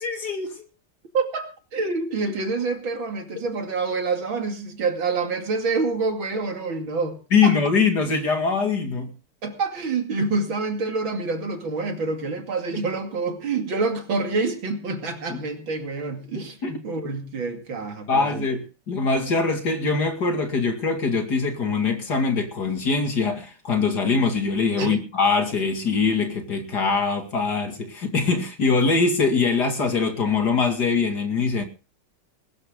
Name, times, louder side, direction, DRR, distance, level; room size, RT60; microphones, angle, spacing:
voice 1, 0.0-0.5 7.3-9.1 15.3-15.4 16.6-16.8 18.1-31.6, left 4 dB, 50° left, 2.8 m, -23 dB
voice 2, 1.1-7.5 9.4-18.4 24.8-25.0, right 4 dB, 65° right, 3.2 m, -27 dB
20.5 x 13.5 x 3.7 m
omnidirectional pair, 2.4 m